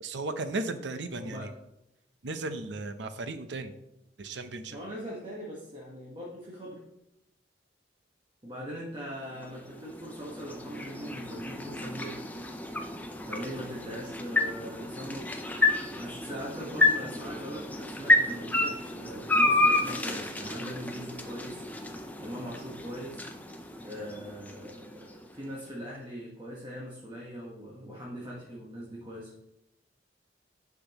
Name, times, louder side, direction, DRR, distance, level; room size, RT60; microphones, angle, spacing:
voice 1, 0.0-1.5 2.2-3.7 4.2-4.8, right 2 dB, 75° right, 9 dB, 0.7 m, -35 dB
voice 2, 1.2-1.5 4.7-6.8 8.4-12.2 13.2-15.4 16.0-21.9 22.2-23.3 23.8-29.3, equal, 25° right, -4 dB, 1.3 m, -41 dB
sound 1, 9.2-25.4, left 2 dB, 10° left, 0.5 m, -30 dB
10.0 x 6.0 x 3.0 m, 0.88 s
head